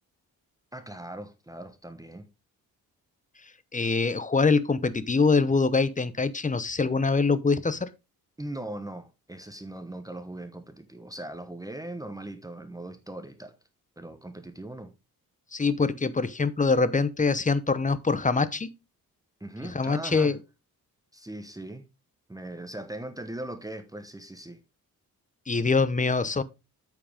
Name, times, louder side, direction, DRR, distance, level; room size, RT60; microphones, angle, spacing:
voice 1, 0.7-2.3 8.4-13.5 14.0-14.9 19.4-20.4 21.1-21.9 22.3-24.6, right 1 dB, 10° right, 1.0 m, -39 dB
voice 2, 3.7-7.9 15.5-18.7 19.7-20.4 25.5-26.4, left 4 dB, 20° left, 0.8 m, -24 dB
8.8 x 7.7 x 3.5 m
cardioid pair, 110°, 36 cm